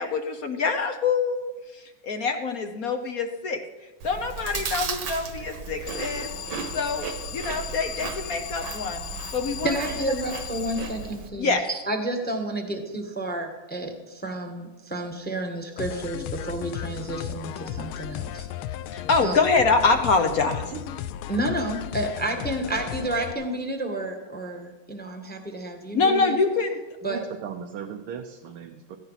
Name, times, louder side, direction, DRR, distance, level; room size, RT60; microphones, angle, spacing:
voice 1, 0.0-3.6 4.0-6.3 6.7-7.1 7.3-9.7 10.0-10.2 11.4-11.6 18.9-20.7 25.9-26.8, left 4 dB, 55° left, 6 dB, 1.1 m, -25 dB
Chewing mastication, 4.0-11.3, right 5 dB, 60° right, 1.7 m, -35 dB
Alarm, 5.9-11.4, left 10 dB, 75° left, 0.8 m, -38 dB
voice 2, 9.6-18.5 19.2-19.3 21.3-26.4 27.0-27.2, right 1 dB, 5° left, 4 dB, 1.1 m, -30 dB
sound 1, 15.8-23.3, left 11 dB, 90° left, 1.5 m, -35 dB
voice 3, 27.1-29.0, right 8 dB, 80° right, 4 dB, 1.7 m, -37 dB
16.0 x 15.0 x 4.1 m, 1.2 s
omnidirectional pair, 2.3 m